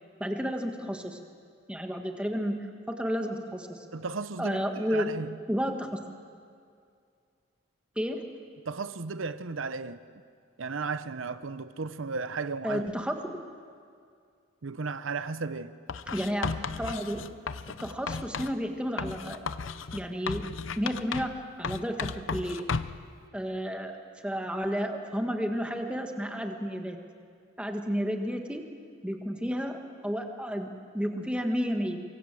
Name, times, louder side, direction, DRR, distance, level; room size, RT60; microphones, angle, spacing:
voice 1, 0.2-1.2 1.7-3.9 4.4-5.1 5.5-6.0 8.0-8.2 12.6-13.4 16.1-17.2 17.7-19.4 19.9-20.5 20.8-22.7 23.3-23.9 24.2-27.0 27.6-28.7 29.0-32.0, equal, 5° right, 1.6 m, -32 dB
voice 2, 3.9-5.4 8.7-10.0 10.6-12.9 14.6-15.7, right 4 dB, 85° right, 0.8 m, -35 dB
Writing, 15.9-18.6 19.0-21.4 21.6-23.0, left 5 dB, 80° left, 0.7 m, -35 dB
25.5 x 23.5 x 7.7 m
head